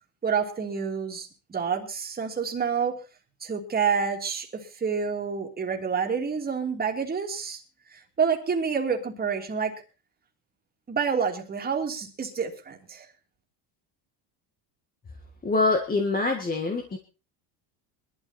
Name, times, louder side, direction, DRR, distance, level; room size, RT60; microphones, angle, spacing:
voice 1, 0.2-3.0 3.4-7.6 7.9-9.8 10.9-13.1, right 6 dB, 20° right, 2 dB, 3.0 m, -28 dB
voice 2, 15.4-17.0, left 3 dB, 20° left, 5 dB, 1.7 m, -25 dB
21.0 x 12.5 x 4.3 m, 0.33 s
cardioid pair, 140°, 45 cm